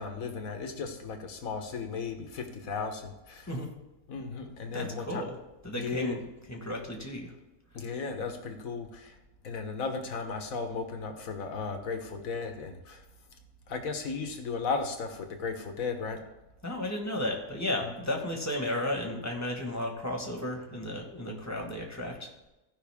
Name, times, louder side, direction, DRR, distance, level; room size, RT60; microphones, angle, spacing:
voice 1, 0.0-3.5 4.1-5.2 5.7-6.2 7.7-9.2 9.4-13.0 13.7-16.3 17.8-17.9, left 4 dB, 65° left, 5 dB, 1.6 m, -35 dB
voice 2, 4.7-5.3 5.6-6.2 6.5-7.3 16.6-22.3, left 1 dB, 10° left, 0 dB, 1.5 m, -33 dB
15.5 x 5.5 x 3.6 m, 1.0 s
omnidirectional pair, 1.6 m